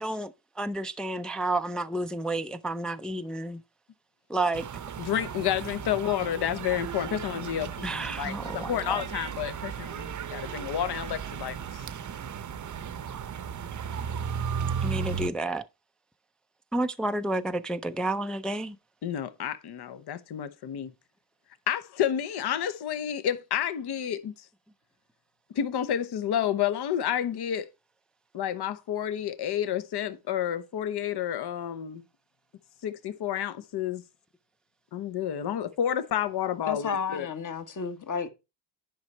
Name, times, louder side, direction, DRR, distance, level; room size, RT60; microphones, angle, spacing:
voice 1, 0.0-3.6 4.3-4.6 7.8-9.0 14.8-15.6 16.7-18.8, right 2 dB, ahead, 0.4 m, -30 dB
sound 1, 4.5-15.3, right 7 dB, 40° right, 0.7 m, -35 dB
voice 2, 5.0-11.8 19.0-20.9 21.7-24.3 25.5-27.7 28.3-32.0 32.8-34.0 34.9-37.3, left 10 dB, 60° left, 1.0 m, -30 dB
voice 3, 36.7-38.3, left 6 dB, 45° left, 1.5 m, -32 dB
10.5 x 5.4 x 4.4 m
cardioid pair, 105°, 44 cm